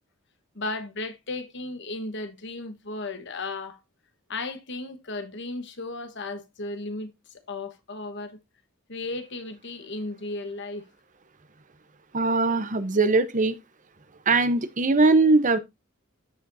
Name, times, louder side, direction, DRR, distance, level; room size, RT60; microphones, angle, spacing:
voice 1, 0.5-3.8 4.3-7.1 7.5-8.4 8.9-10.9, left 2 dB, 60° left, 1.3 m, -35 dB
voice 2, 12.1-13.5 14.3-15.6, right 3 dB, 40° right, 0.8 m, -21 dB
14.0 x 5.1 x 2.7 m
head